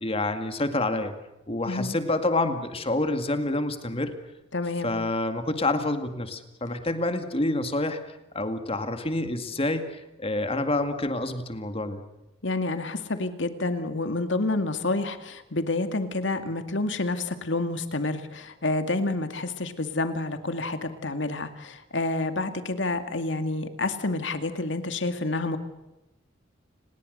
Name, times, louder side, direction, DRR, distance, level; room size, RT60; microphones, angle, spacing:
voice 1, 0.0-1.1 1.5-4.1 4.8-12.0, left 2 dB, 30° left, 8 dB, 2.1 m, -28 dB
voice 2, 1.7-2.0 4.5-4.9 12.4-25.6, left 2 dB, 70° left, 8 dB, 2.3 m, -29 dB
29.5 x 20.0 x 6.6 m, 0.99 s
head